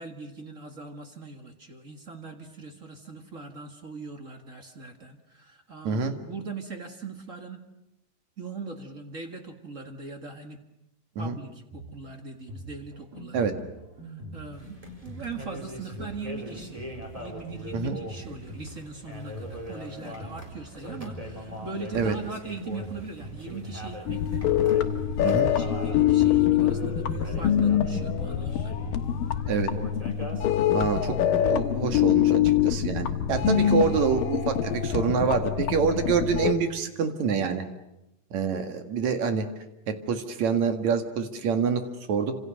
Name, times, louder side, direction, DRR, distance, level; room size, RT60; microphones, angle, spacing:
voice 1, 0.0-7.6 8.4-10.6 11.2-13.7 14.0-14.8 15.0-16.9 17.2-24.4 25.2-28.7, right 4 dB, 30° right, 5 dB, 1.5 m, -40 dB
Drum kit, 11.7-29.9, right 1 dB, 80° right, 7.0 m, -43 dB
sound 1, 14.5-30.9, equal, 10° right, 4.0 m, -42 dB
sound 2, 24.1-36.5, left 10 dB, 75° left, 3.0 m, -24 dB
voice 2, 30.7-31.2 31.5-37.6 38.3-39.5 39.9-42.4, right 5 dB, 55° right, 7 dB, 3.1 m, -26 dB
28.5 x 26.5 x 6.5 m, 0.90 s
omnidirectional pair, 4.1 m